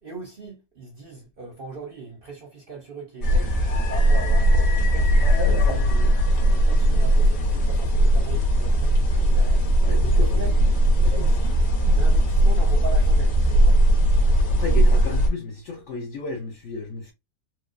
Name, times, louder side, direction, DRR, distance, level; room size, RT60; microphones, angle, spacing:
voice 1, 0.0-9.6 10.0-10.5 10.9-11.6 11.9-13.8, right 3 dB, 50° right, 0.7 m, -39 dB
sound 1, 3.2-15.3, right 1 dB, 90° left, 1.8 m, -19 dB
voice 2, 9.8-11.1 14.5-17.1, left 3 dB, 65° left, 0.7 m, -34 dB
4.5 x 2.2 x 2.4 m
omnidirectional pair, 1.8 m